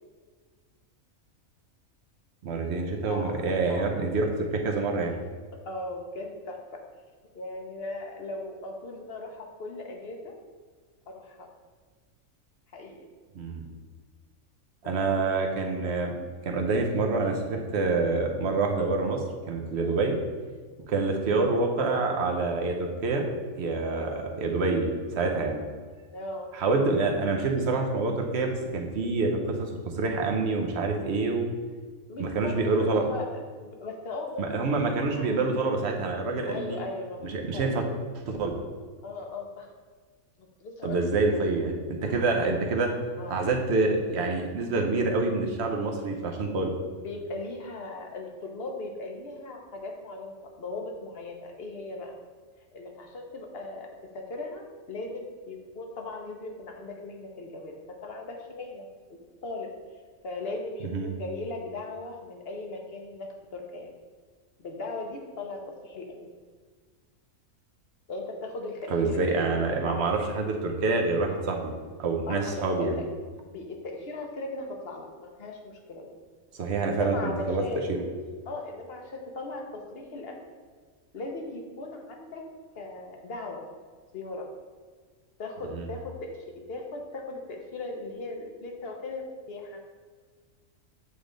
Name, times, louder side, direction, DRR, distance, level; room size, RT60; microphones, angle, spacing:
voice 1, 2.4-5.2 13.3-13.6 14.8-16.1 16.4-20.2 20.9-23.2 23.6-25.6 26.5-31.5 32.2-33.0 34.4-36.8 37.2-37.8 38.3-38.5 40.8-42.9 43.3-46.7 60.8-61.1 68.9-71.7 72.0-73.0 76.5-77.6 77.9-78.0 85.8-85.9, right 3 dB, 60° right, 2 dB, 0.9 m, -27 dB
voice 2, 3.0-3.4 3.7-4.1 5.1-5.2 5.7-6.8 7.3-10.3 11.1-11.5 12.7-13.1 14.8-15.3 16.7-16.9 19.8-20.0 20.9-21.2 23.8-24.1 26.1-26.5 32.1-34.5 34.7-35.5 36.5-38.0 39.0-39.7 40.4-41.4 42.0-42.4 43.2-43.5 46.9-52.2 52.7-58.9 59.4-59.7 60.2-63.9 64.6-66.3 68.1-70.1 72.3-73.0 73.4-76.1 76.9-78.0 78.4-80.4 81.1-82.4 82.7-83.6 84.1-84.5 85.4-89.8, left 2 dB, 50° left, 2 dB, 0.9 m, -38 dB
8.1 x 3.4 x 3.8 m, 1.5 s
omnidirectional pair, 1.4 m